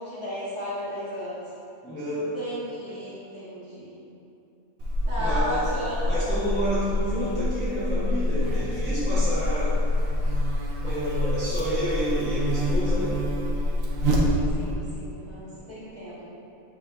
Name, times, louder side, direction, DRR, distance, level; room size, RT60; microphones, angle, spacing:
voice 1, 0.0-1.5 2.1-4.0 5.0-6.1 14.2-16.2, equal, 35° right, -11 dB, 1.3 m, -34 dB
voice 2, 1.8-2.4 5.2-5.7 6.1-9.8 10.8-13.2, equal, 10° left, -11 dB, 0.6 m, -29 dB
Buzz, 4.8-14.8, left 1 dB, 80° right, 1.0 m, -26 dB
7.8 x 2.7 x 2.3 m, 2.8 s
omnidirectional pair, 1.4 m